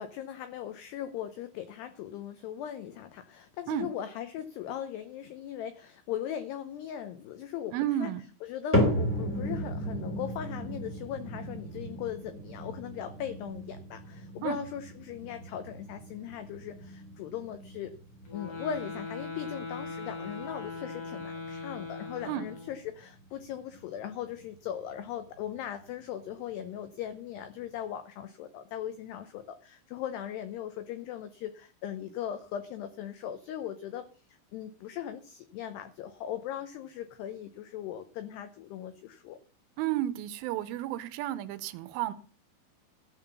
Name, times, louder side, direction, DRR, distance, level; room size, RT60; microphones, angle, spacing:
voice 1, 0.0-8.1 8.4-17.9 18.3-39.4, left 10 dB, 90° left, 10 dB, 2.3 m, -39 dB
voice 2, 7.7-8.2 14.4-14.6 22.3-22.5 39.8-42.1, right 13 dB, 80° right, 13 dB, 3.2 m, -32 dB
sound 1, 8.7-25.0 25.4-25.9 26.5-26.6 27.4-27.5, equal, 5° left, 1.0 m, -36 dB
sound 2, 18.3-22.8, left 3 dB, 55° left, 5.9 m, -40 dB
14.0 x 5.7 x 6.8 m, 0.39 s
omnidirectional pair, 5.8 m